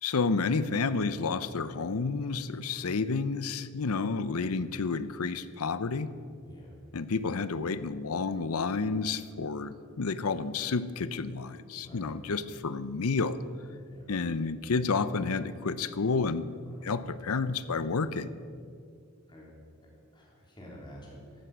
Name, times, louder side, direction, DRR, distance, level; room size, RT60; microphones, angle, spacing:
voice 1, 0.0-6.1 6.9-13.4 14.1-16.5 16.8-18.3, left 4 dB, 85° left, 15 dB, 0.7 m, -30 dB
voice 2, 6.4-6.8 11.8-12.1 13.8-14.1 16.7-16.9 19.3-19.5 20.1-21.2, equal, 20° left, -3 dB, 3.7 m, -50 dB
15.0 x 12.5 x 6.2 m, 2.3 s
head